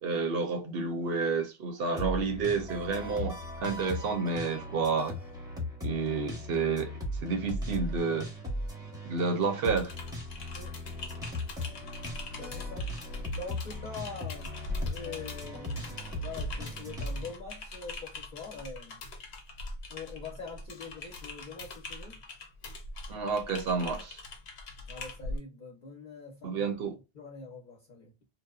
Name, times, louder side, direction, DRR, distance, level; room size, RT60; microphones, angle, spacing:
voice 1, 0.0-5.2 5.8-6.9 7.2-8.3 9.1-9.9 23.1-24.2 26.4-27.0, right 4 dB, 65° right, 0.9 m, -30 dB
sound 1, 2.0-17.3, left 1 dB, 5° right, 1.0 m, -38 dB
Typing, 9.7-25.4, left 2 dB, 85° left, 1.0 m, -42 dB
voice 2, 12.3-12.9 13.3-14.6 14.8-19.0 19.9-22.2 24.9-26.6 27.1-28.1, left 4 dB, 50° left, 0.8 m, -44 dB
2.9 x 2.1 x 2.3 m
omnidirectional pair, 1.1 m